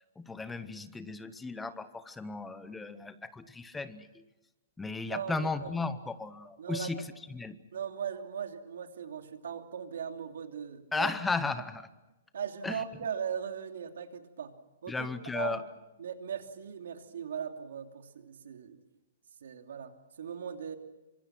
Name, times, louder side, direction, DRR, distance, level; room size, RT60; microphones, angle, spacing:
voice 1, 0.2-4.1 4.8-7.0 7.3-7.6 10.9-11.9 12.6-12.8 14.9-15.6, left 3 dB, 5° left, 12 dB, 0.8 m, -35 dB
voice 2, 5.1-5.7 6.6-6.9 7.7-11.1 12.3-14.5 14.8-15.1 15.3-15.6 16.0-18.8 19.4-20.8, right 7 dB, 75° right, 5 dB, 2.9 m, -39 dB
27.0 x 25.5 x 6.0 m, 1.0 s
hypercardioid pair, 175°, 0 cm